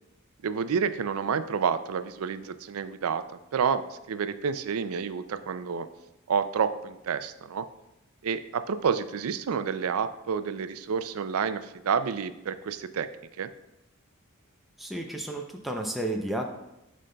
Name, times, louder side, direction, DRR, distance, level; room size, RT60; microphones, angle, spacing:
voice 1, 0.4-5.9 6.3-7.7 8.2-13.1 13.4-13.5, right 6 dB, 75° right, 12 dB, 0.4 m, -29 dB
voice 2, 14.8-16.5, right 1 dB, ahead, 1 dB, 0.5 m, -32 dB
11.5 x 5.1 x 2.3 m, 0.91 s
head